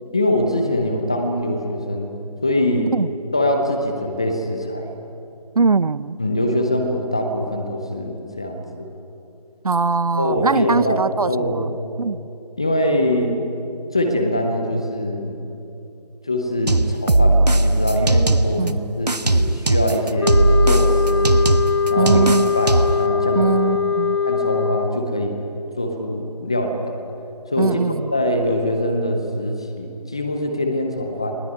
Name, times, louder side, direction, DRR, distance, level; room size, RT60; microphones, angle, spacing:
voice 1, 0.1-2.1 2.4-2.9 3.3-4.9 6.2-8.9 10.2-11.8 12.6-13.4 13.9-15.4 16.3-21.4 21.9-23.6 24.3-25.5 25.8-27.0 27.5-31.4, left 1 dB, 10° left, 0.5 m, -23 dB
voice 2, 5.5-6.2 9.6-11.7 12.0-12.3 18.6-18.8 22.0-22.6 23.4-24.2 27.6-28.1, right 4 dB, 65° right, 0.7 m, -21 dB
sound 1, 16.7-18.7 19.1-23.1, right 2 dB, 90° right, 1.2 m, -18 dB
sound 2, 20.2-25.1, left 6 dB, 45° left, 0.9 m, -21 dB
20.5 x 18.5 x 9.7 m
figure-of-eight pair, 160°, 20 cm